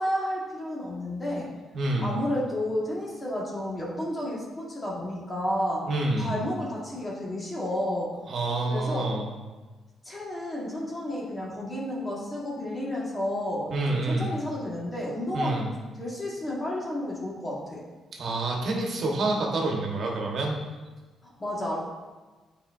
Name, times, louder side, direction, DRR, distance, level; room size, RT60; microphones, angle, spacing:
voice 1, 0.0-1.5 2.0-5.9 6.2-8.1 8.6-9.1 10.0-17.8 21.2-21.8, left 1 dB, 25° left, -5 dB, 1.8 m, -31 dB
voice 2, 1.7-2.1 5.9-6.4 8.3-9.2 13.7-14.3 15.3-15.6 18.2-20.5, right 2 dB, 55° right, 0 dB, 1.3 m, -27 dB
9.0 x 4.3 x 2.7 m, 1.3 s
cardioid pair, 90°, 0 cm